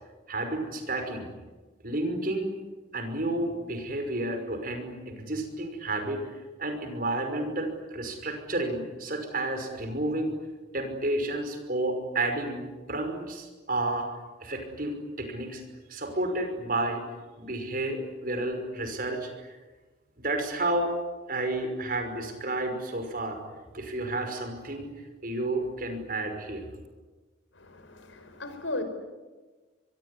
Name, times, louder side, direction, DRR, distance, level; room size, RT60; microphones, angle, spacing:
voice 1, 0.3-1.3 1.8-2.5 2.9-6.2 6.6-10.3 10.7-14.1 14.4-15.6 15.9-17.0 17.4-19.6 20.2-20.9 21.3-23.4 23.7-24.9 25.2-26.7, right 2 dB, 45° right, 6 dB, 5.7 m, -31 dB
voice 2, 27.5-28.8, left 2 dB, 80° left, 9 dB, 5.1 m, -36 dB
25.0 x 23.0 x 10.0 m, 1.3 s
head